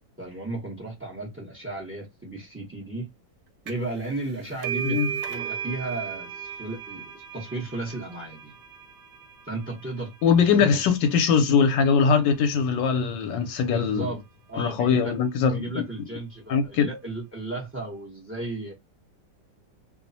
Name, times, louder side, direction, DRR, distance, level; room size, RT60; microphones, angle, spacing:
voice 1, 0.2-3.1 3.6-5.0 5.3-8.5 9.4-10.1 10.4-10.7 13.7-14.2 14.5-15.1 15.4-18.7, right 2 dB, 20° right, 0.3 m, -34 dB
sound 1, 3.7-4.0 4.2-11.6, right 8 dB, 75° right, 1.2 m, -36 dB
voice 2, 10.2-14.0 14.6-15.8 16.5-16.9, left 6 dB, 80° left, 1.2 m, -21 dB
3.0 x 2.0 x 2.6 m
omnidirectional pair, 1.9 m